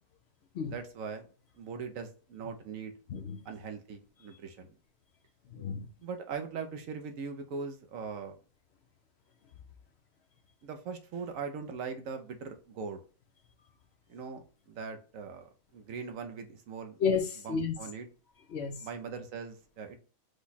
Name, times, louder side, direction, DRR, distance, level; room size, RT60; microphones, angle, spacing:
voice 1, 0.7-1.3 1.6-2.9 3.4-4.7 6.0-8.3 10.6-13.0 14.1-17.0 17.4-18.1 18.8-20.0, right 5 dB, 75° right, 1.2 m, -40 dB
voice 2, 5.5-5.9 17.0-17.8 18.5-18.9, left 6 dB, 60° left, 0.8 m, -31 dB
5.1 x 2.3 x 4.0 m
omnidirectional pair, 1.4 m